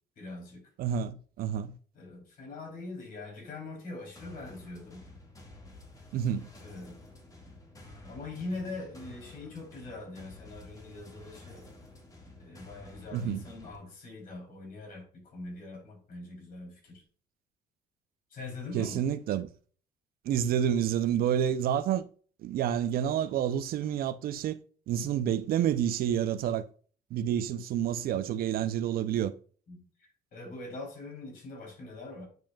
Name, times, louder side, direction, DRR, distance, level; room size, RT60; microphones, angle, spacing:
voice 1, 0.2-0.7 1.9-5.0 6.6-7.0 8.1-11.6 12.4-17.0 18.3-19.0 29.7-32.3, left 2 dB, 55° left, 3.4 m, -42 dB
voice 2, 0.8-1.7 6.1-6.5 13.1-13.4 18.7-19.5 20.3-22.1 22.4-24.6 24.9-26.7 27.1-29.3, right 9 dB, 65° right, 0.5 m, -29 dB
sound 1, 4.2-13.8, left 1 dB, 20° left, 1.8 m, -51 dB
9.1 x 5.0 x 2.3 m
cardioid pair, 110°, 17 cm